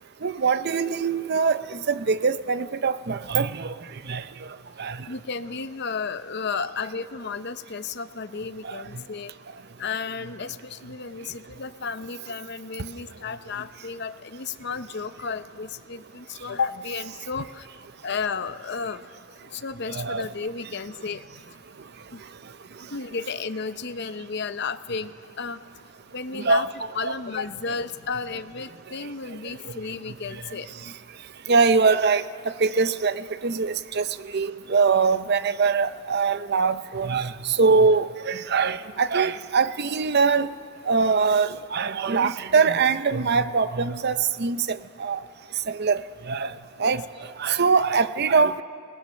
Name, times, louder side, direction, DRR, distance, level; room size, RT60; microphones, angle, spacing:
voice 1, 0.2-3.7 4.1-4.2 4.8-5.0 8.6-8.8 19.9-20.3 26.3-26.7 27.1-27.2 31.5-34.1 34.3-40.5 40.9-45.2 45.7-46.0 46.3-47.1 47.4-48.6, right 5 dB, 45° right, 0.6 m, -23 dB
voice 2, 5.1-9.3 9.8-17.7 18.0-19.0 19.4-21.4 22.1-22.2 22.9-25.6 26.1-26.7 26.9-30.7 46.8-47.0, left 5 dB, 50° left, 0.7 m, -33 dB
29.5 x 19.5 x 6.3 m
head